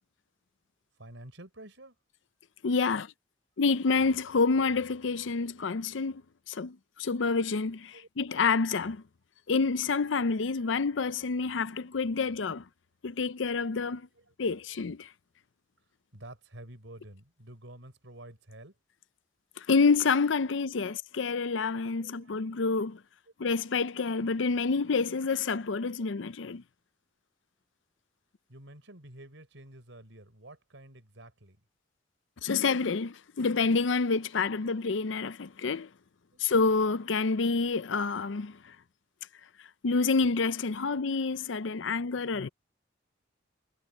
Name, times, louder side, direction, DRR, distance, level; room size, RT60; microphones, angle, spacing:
voice 1, 1.0-2.0 7.9-8.1 10.6-10.7 11.7-12.3 13.1-13.2 14.1-14.6 16.1-18.7 20.5-21.5 21.9-22.7 26.0-26.1 28.5-31.6 34.5-34.8 36.3-36.4 40.6-41.0 41.8-42.0, right 1 dB, 75° right, 5.0 m, -51 dB
voice 2, 2.6-3.1 3.6-6.2 6.5-9.0 9.5-12.6 13.0-14.1 14.4-15.1 19.6-23.0 23.4-26.6 32.4-35.9 36.4-38.6 39.8-42.5, left 4 dB, 70° left, 0.6 m, -28 dB
head